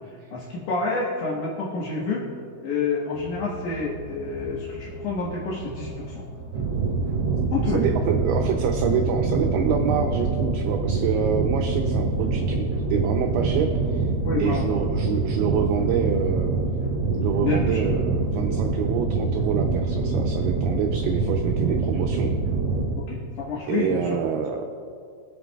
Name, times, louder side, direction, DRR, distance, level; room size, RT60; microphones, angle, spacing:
voice 1, 0.3-2.3 2.6-6.2 7.5-7.8 14.2-14.7 17.4-17.9 21.7-21.9 23.0-24.4, left 4 dB, 60° left, -5 dB, 2.2 m, -28 dB
Car, 3.1-8.6, right 1 dB, 40° left, 3.8 m, -40 dB
sound 1, 6.5-22.9, right 4 dB, 45° right, 2.9 m, -25 dB
voice 2, 7.7-14.0 14.4-16.5 17.1-22.3 23.7-24.7, right 6 dB, 80° right, 2 dB, 2.4 m, -27 dB
24.0 x 8.1 x 2.4 m, 2.4 s
omnidirectional pair, 5.1 m